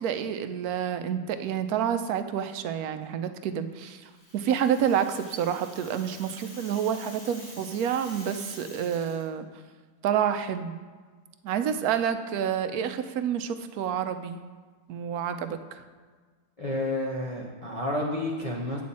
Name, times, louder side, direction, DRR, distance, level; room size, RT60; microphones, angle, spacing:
voice 1, 0.0-9.5 10.0-10.7 11.4-14.4 14.9-15.8, right 8 dB, 80° right, 9 dB, 1.1 m, -29 dB
Rattle (instrument), 4.0-9.3, left 1 dB, 45° left, 2.0 m, -48 dB
voice 2, 16.6-18.8, left 1 dB, 30° left, -5 dB, 0.9 m, -30 dB
8.4 x 7.9 x 4.2 m, 1.5 s
omnidirectional pair, 1.6 m